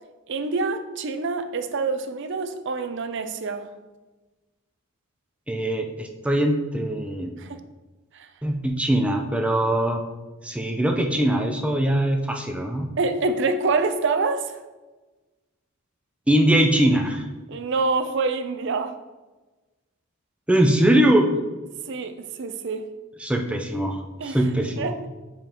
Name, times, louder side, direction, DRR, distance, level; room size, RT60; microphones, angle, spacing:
voice 1, 0.3-3.7 7.4-7.6 8.1-8.3 13.0-14.6 17.5-19.0 21.9-22.9 24.2-24.5 24.8-25.0, right 3 dB, 60° right, 8 dB, 0.5 m, -26 dB
voice 2, 5.5-7.3 8.4-10.0 10.4-12.9 16.3-17.3 20.5-21.3 23.2-24.0 24.2-24.9, right 1 dB, 5° right, 3 dB, 0.5 m, -21 dB
9.2 x 5.0 x 3.0 m, 1.2 s
head